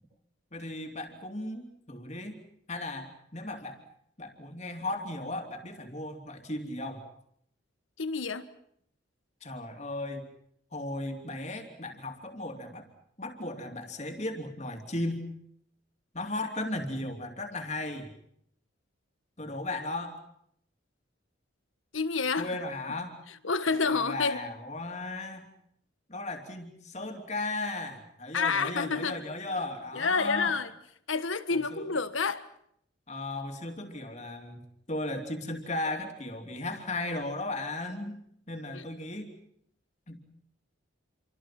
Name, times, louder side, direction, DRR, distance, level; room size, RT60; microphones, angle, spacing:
voice 1, 0.5-2.4 2.7-3.8 4.2-7.0 9.4-10.3 10.7-12.9 13.2-15.2 16.1-18.1 19.4-20.2 22.4-23.2 23.7-25.5 26.1-30.6 31.5-31.9 33.1-38.2 38.5-39.3 40.1-40.2, left 2 dB, 35° left, 3.2 m, -36 dB
voice 2, 8.0-8.5 21.9-22.5 23.4-24.4 28.3-29.2 29.9-30.7 31.1-32.4 38.7-38.8, left 4 dB, 80° left, 1.6 m, -28 dB
28.5 x 25.0 x 6.0 m
head